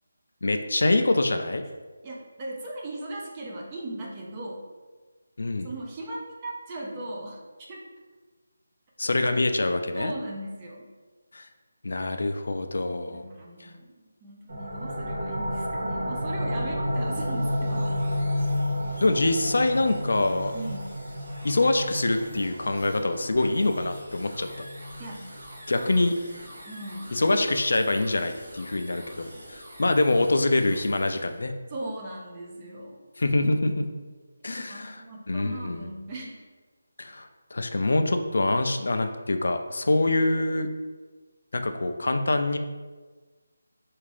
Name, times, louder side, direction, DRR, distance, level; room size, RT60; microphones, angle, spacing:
voice 1, 0.4-1.6 5.4-5.7 9.0-10.1 11.3-11.5 11.8-13.2 19.0-20.5 21.4-24.7 25.7-26.1 27.1-31.5 33.2-33.9 34.4-35.9 37.0-40.7 41.5-42.6, left 2 dB, 70° left, 7 dB, 0.3 m, -25 dB
voice 2, 2.0-4.6 5.6-7.4 7.7-7.8 10.0-10.9 13.1-13.9 14.2-18.0 20.5-20.9 25.0-25.4 25.7-27.2 31.7-33.0 34.4-36.4, right 1 dB, 15° right, -2 dB, 0.4 m, -38 dB
sound 1, 14.5-25.9, equal, 75° right, 0.6 m, -31 dB
sound 2, 16.8-31.4, equal, 55° right, 1.4 m, -47 dB
3.5 x 2.4 x 3.3 m, 1.3 s
figure-of-eight pair, 175°, 0 cm